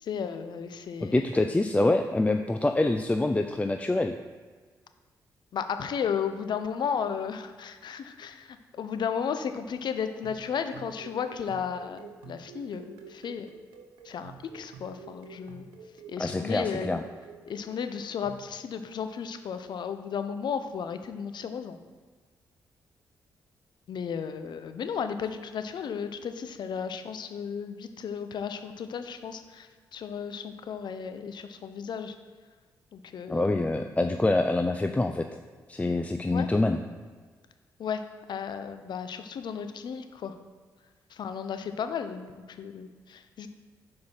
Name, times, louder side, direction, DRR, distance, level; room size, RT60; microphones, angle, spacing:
voice 1, 0.0-1.2 5.5-13.5 14.0-15.6 16.1-17.0 17.5-21.8 23.9-32.1 32.9-33.5 36.3-36.5 37.8-38.0 38.3-40.3 41.1-43.5, left 7 dB, 65° left, 9 dB, 0.7 m, -34 dB
voice 2, 1.0-4.1 16.2-17.0 33.3-35.3 35.7-36.8, left 2 dB, 15° left, 6 dB, 0.4 m, -25 dB
sound 1, 10.0-18.5, right 6 dB, 90° right, 0.6 m, -49 dB
6.3 x 4.8 x 5.6 m, 1.5 s
supercardioid pair, 50°, 8 cm